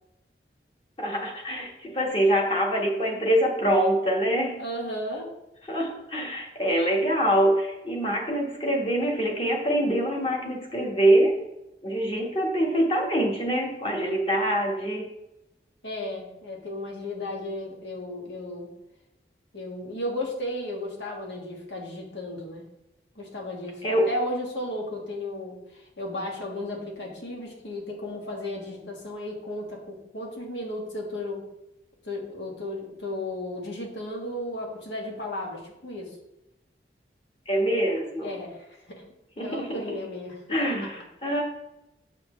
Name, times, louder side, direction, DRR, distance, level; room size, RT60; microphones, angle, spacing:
voice 1, 1.0-4.6 5.7-11.5 11.8-15.1 23.8-24.1 37.5-38.3 39.4-40.0 40.5-41.4, right 1 dB, 30° left, -1 dB, 1.3 m, -24 dB
voice 2, 4.6-5.3 15.8-18.7 19.5-22.7 23.1-31.5 32.0-36.2 38.2-39.0 39.4-40.4 40.8-40.9, left 1 dB, 85° left, 0 dB, 1.6 m, -34 dB
7.6 x 5.8 x 3.2 m, 0.92 s
head